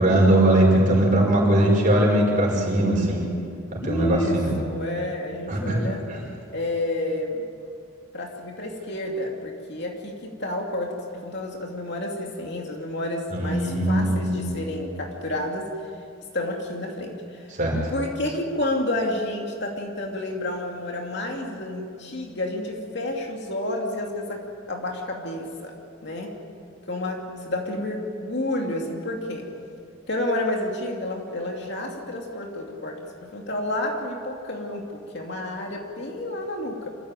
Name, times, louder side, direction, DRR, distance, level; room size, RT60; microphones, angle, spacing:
voice 1, 0.0-3.3 3.7-4.5 5.5-5.8 6.1-6.2 13.3-14.5 17.6-17.8, right 1 dB, 35° right, -1 dB, 5.7 m, -20 dB
voice 2, 3.8-6.0 6.5-7.4 8.1-10.9 11.2-15.7 16.3-17.5 17.9-25.7 26.0-26.3 26.9-29.5 30.1-33.0 33.3-36.9, left 1 dB, 50° left, 1 dB, 2.7 m, -30 dB
26.0 x 15.0 x 9.1 m, 2.6 s
head